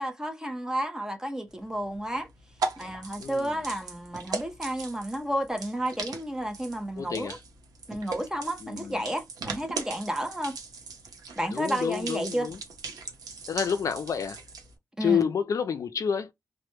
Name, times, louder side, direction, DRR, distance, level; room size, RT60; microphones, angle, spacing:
voice 1, 0.0-2.3 2.8-7.4 7.9-10.6 11.4-12.5 15.0-15.3, right 1 dB, 10° right, 0.5 m, -31 dB
sound 1, 1.5-14.7, right 4 dB, 85° right, 0.6 m, -39 dB
voice 2, 3.2-3.5 7.0-7.4 8.6-9.0 11.5-12.6 13.5-14.4 15.0-16.3, left 7 dB, 60° left, 0.3 m, -29 dB
2.1 x 2.0 x 2.9 m
wide cardioid pair, 110°, 6 cm